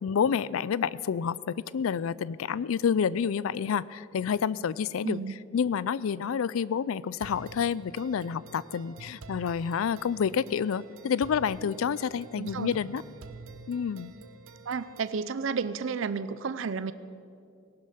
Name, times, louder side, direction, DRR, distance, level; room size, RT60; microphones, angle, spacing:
voice 1, 0.0-5.2 5.5-13.0 13.7-14.1, left 7 dB, 80° left, 20 dB, 0.4 m, -29 dB
voice 2, 5.0-5.4 12.4-12.7 14.7-16.9, right 5 dB, 65° right, 14 dB, 0.5 m, -32 dB
sound 1, 7.2-15.2, right 4 dB, 90° right, 0.8 m, -48 dB
18.5 x 11.5 x 5.7 m, 2.6 s
head